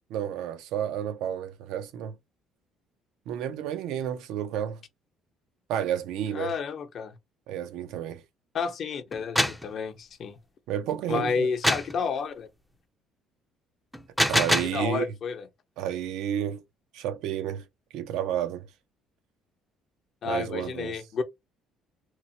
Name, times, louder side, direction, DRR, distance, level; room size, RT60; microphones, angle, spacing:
voice 1, 0.1-2.2 3.3-4.8 5.7-6.5 7.5-8.2 10.7-11.5 14.3-15.1 15.8-16.6 16.9-17.6 17.9-18.7 20.2-21.0, right 10 dB, 80° right, 0.5 m, -31 dB
voice 2, 6.3-7.1 8.5-10.4 11.1-12.5 14.6-15.5 20.2-21.2, left 5 dB, 50° left, 0.6 m, -31 dB
sound 1, 9.1-9.7 11.6-12.0 13.9-14.8, equal, ahead, 0.4 m, -24 dB
2.9 x 2.0 x 2.7 m
cardioid pair, 120°, 0 cm